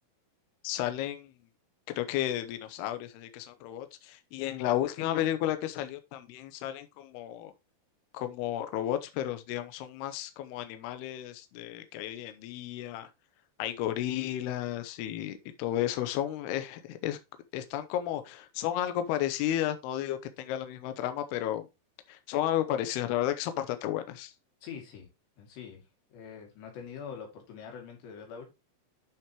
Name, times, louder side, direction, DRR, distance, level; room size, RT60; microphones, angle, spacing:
voice 1, 0.6-1.3 1.9-7.5 8.1-13.1 13.6-17.2 17.5-21.7 22.1-24.3, left 12 dB, 85° left, 2.4 m, -33 dB
voice 2, 24.6-25.1 25.4-25.8 26.1-28.5, left 7 dB, 60° left, 4.5 m, -44 dB
10.0 x 6.0 x 3.0 m
omnidirectional pair, 5.7 m